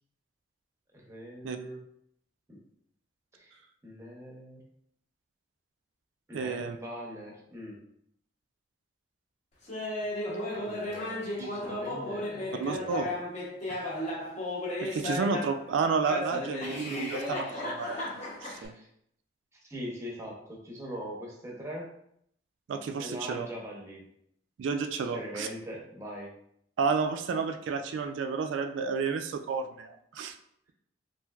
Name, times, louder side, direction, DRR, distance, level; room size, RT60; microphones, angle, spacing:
voice 1, 0.9-1.9 2.5-2.6 3.3-4.6 6.3-7.8 10.6-13.1 18.7-18.9 19.6-21.9 23.0-24.1 25.1-26.3, equal, 15° right, -1 dB, 0.7 m, -42 dB
voice 2, 6.3-6.8 11.4-11.5 12.6-13.1 14.8-18.0 18.4-18.7 22.7-23.5 24.6-25.5 26.8-30.3, right 5 dB, 85° right, 8 dB, 0.3 m, -31 dB
Laughter, 9.7-15.6 16.1-18.7, left 1 dB, 40° left, 0.7 m, -34 dB
3.1 x 2.7 x 2.3 m, 0.70 s
head